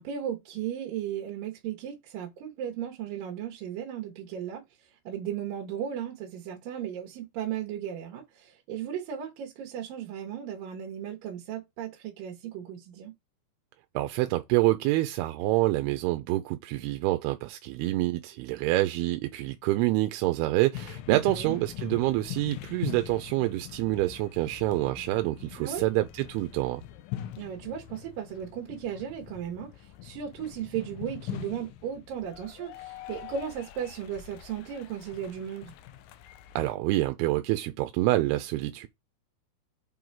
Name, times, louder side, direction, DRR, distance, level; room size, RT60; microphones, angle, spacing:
voice 1, 0.0-4.6 5.1-13.1 21.1-21.6 25.6-25.8 27.4-29.7 30.0-35.7, right 9 dB, 70° right, 2.5 m, -36 dB
voice 2, 14.0-26.8 36.6-38.9, right 17 dB, 90° right, 2.6 m, -27 dB
sound 1, 20.7-36.7, left 13 dB, 80° left, 2.1 m, -42 dB
7.3 x 3.8 x 4.6 m
omnidirectional pair, 4.5 m